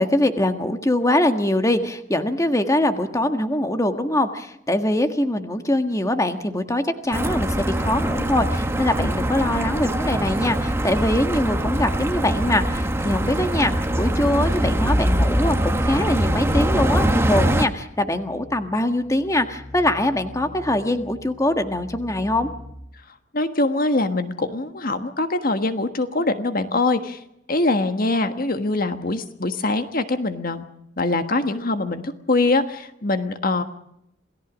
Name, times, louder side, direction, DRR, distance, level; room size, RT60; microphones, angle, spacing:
voice 1, 0.0-22.5, left 1 dB, 15° left, 7 dB, 1.6 m, -23 dB
sound 1, 7.1-17.7, right 1 dB, 15° right, 1.3 m, -22 dB
sound 2, 15.4-22.7, left 1 dB, 75° left, 6.1 m, -43 dB
voice 2, 23.3-27.2 27.5-30.6 31.0-33.6, left 2 dB, 50° left, 8 dB, 1.5 m, -23 dB
28.0 x 18.0 x 6.3 m, 0.79 s
head